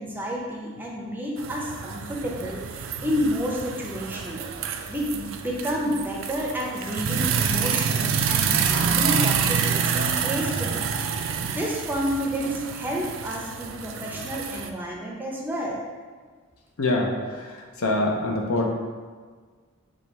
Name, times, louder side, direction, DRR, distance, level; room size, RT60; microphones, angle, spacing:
voice 1, 0.0-4.4 4.9-11.1 11.4-15.8, equal, 10° right, -2 dB, 0.5 m, -30 dB
sound 1, 1.4-14.7, right 7 dB, 60° right, 0.3 m, -27 dB
voice 2, 16.8-17.5 17.8-18.7, left 2 dB, 80° left, 1 dB, 0.6 m, -24 dB
4.8 x 2.3 x 4.1 m, 1.5 s
head